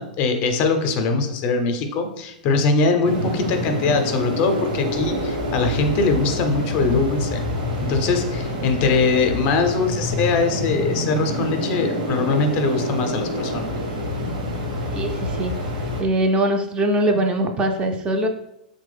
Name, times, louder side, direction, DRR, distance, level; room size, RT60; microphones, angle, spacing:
voice 1, 0.0-7.4 7.8-13.7, left 4 dB, 40° left, 6 dB, 0.5 m, -22 dB
sound 1, 3.0-16.0, left 1 dB, 75° right, 0.9 m, -27 dB
voice 2, 14.9-15.5 16.0-18.3, right 1 dB, 20° right, 4 dB, 0.3 m, -21 dB
3.0 x 2.1 x 3.2 m, 0.79 s
hypercardioid pair, 115°, 5 cm